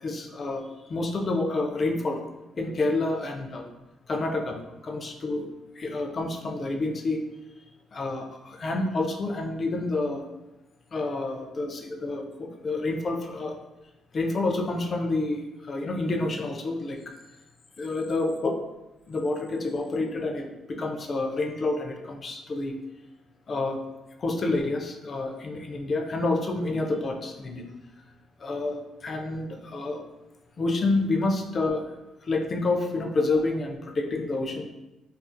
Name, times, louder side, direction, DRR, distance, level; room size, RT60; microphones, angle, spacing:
voice 1, 0.0-2.2 2.6-3.7 4.1-5.5 5.7-7.2 7.9-10.2 10.9-13.6 14.1-17.0 17.8-18.5 19.1-22.7 23.5-23.9 24.2-27.7 28.4-30.0 30.6-31.9 32.2-34.7, left 2 dB, 45° left, 3 dB, 0.3 m, -28 dB
2.4 x 2.3 x 2.5 m, 0.99 s
cardioid pair, 90°, 0 cm